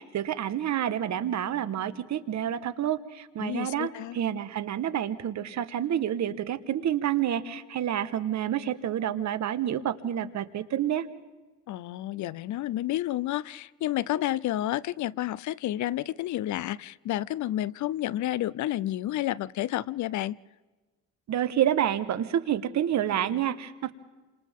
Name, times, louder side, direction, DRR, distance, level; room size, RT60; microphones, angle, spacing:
voice 1, 0.0-11.0 21.3-23.9, right 10 dB, 65° right, 11 dB, 1.4 m, -28 dB
voice 2, 3.4-4.2 11.7-20.4, left 14 dB, 70° left, 22 dB, 0.6 m, -30 dB
29.5 x 26.5 x 3.7 m, 1.2 s
cardioid pair, 90°, 30 cm